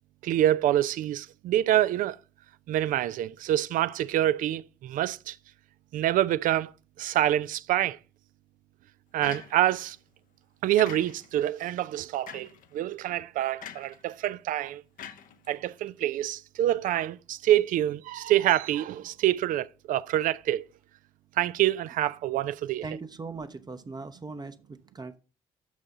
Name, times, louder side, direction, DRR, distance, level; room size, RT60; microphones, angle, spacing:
voice 1, 0.2-2.2 2.7-5.4 5.9-6.7 7.0-8.0 9.1-10.0 10.6-14.8 15.5-20.6 21.4-22.8, right 13 dB, 55° right, 0.4 m, -26 dB
sound 1, 9.2-9.9 10.8-11.4 12.3-12.7 13.6-14.0 15.0-15.9, left 9 dB, 55° left, 0.7 m, -44 dB
voice 2, 22.8-25.2, right 4 dB, 25° right, 0.8 m, -39 dB
6.5 x 6.4 x 6.4 m
figure-of-eight pair, 40°, 16 cm